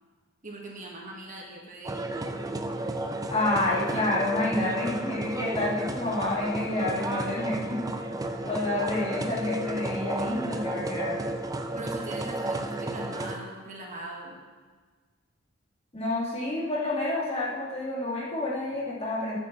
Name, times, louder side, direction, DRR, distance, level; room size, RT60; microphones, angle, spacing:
voice 1, 0.4-2.0 11.7-14.4, right 2 dB, 40° right, -1 dB, 1.6 m, -40 dB
sound 1, 1.8-13.4, right 2 dB, 20° right, 0.6 m, -33 dB
voice 2, 3.3-7.8 8.5-11.2 15.9-19.4, left 2 dB, 30° left, -6 dB, 2.4 m, -29 dB
8.8 x 6.5 x 7.3 m, 1.5 s
head